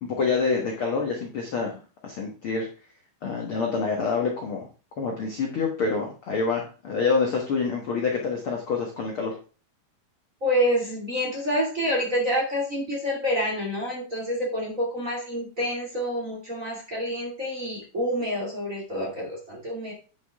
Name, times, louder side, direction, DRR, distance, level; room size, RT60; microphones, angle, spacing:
voice 1, 0.2-2.7 3.2-4.7 5.0-9.3, left 4 dB, 60° left, 0 dB, 1.4 m, -27 dB
voice 2, 10.4-19.9, equal, 25° right, -2 dB, 2.1 m, -27 dB
9.7 x 6.5 x 3.5 m, 0.36 s
omnidirectional pair, 4.4 m